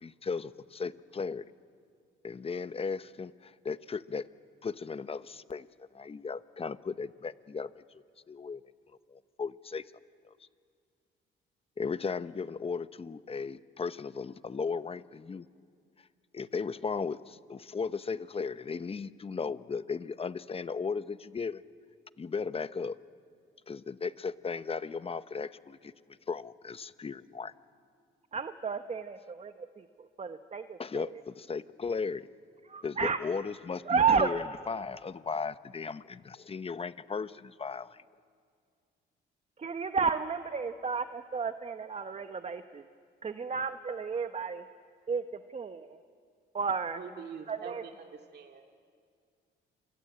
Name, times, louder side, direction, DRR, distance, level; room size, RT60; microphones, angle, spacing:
voice 1, 0.0-1.4 2.2-4.3 4.6-5.7 5.9-7.8 8.3-8.6 9.1-9.8 11.8-15.5 16.3-21.6 22.2-23.0 23.7-25.9 26.3-27.5 30.8-32.2 32.8-38.0, left 5 dB, 30° left, 14 dB, 0.8 m, -36 dB
voice 2, 28.3-31.0 32.7-33.2 33.9-34.3 39.6-42.8 43.2-44.6 45.1-46.0 46.5-47.0 47.5-47.8, right 5 dB, 35° right, 9 dB, 1.1 m, -32 dB
voice 3, 47.0-48.6, right 6 dB, 55° right, 3 dB, 2.2 m, -45 dB
28.5 x 23.0 x 8.8 m, 2.2 s
cardioid pair, 90°, 20 cm